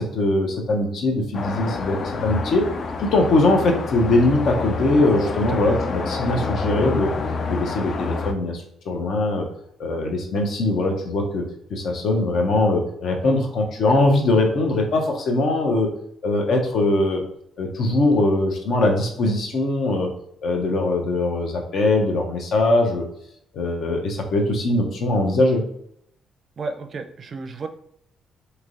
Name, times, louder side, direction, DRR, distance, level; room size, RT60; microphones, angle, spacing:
voice 1, 0.0-2.7 3.0-7.1 7.5-9.5 9.8-15.9 16.2-17.2 17.6-20.1 20.4-23.1 23.5-25.6, left 2 dB, 65° left, 2 dB, 0.7 m, -21 dB
sound 1, 1.3-8.3, left 4 dB, 50° left, 0.3 m, -28 dB
voice 2, 26.6-27.7, right 4 dB, 45° right, 6 dB, 0.4 m, -32 dB
3.2 x 2.8 x 2.5 m, 0.71 s
cardioid pair, 90°, 0 cm